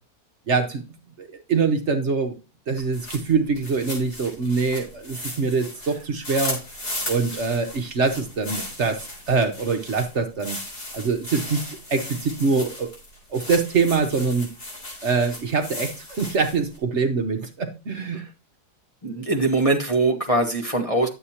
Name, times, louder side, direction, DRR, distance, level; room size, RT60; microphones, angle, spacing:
voice 1, 0.5-0.8 1.2-2.3 2.7-6.6 7.1-9.0 9.3-10.6 10.9-12.9 13.3-14.5 15.0-18.2, right 4 dB, 50° right, 5 dB, 1.2 m, -24 dB
sound 1, 2.8-16.8, left 1 dB, 90° left, 4.4 m, -36 dB
voice 2, 19.0-21.1, right 2 dB, 25° left, 0 dB, 1.0 m, -22 dB
11.0 x 7.9 x 2.9 m, 0.29 s
omnidirectional pair, 1.6 m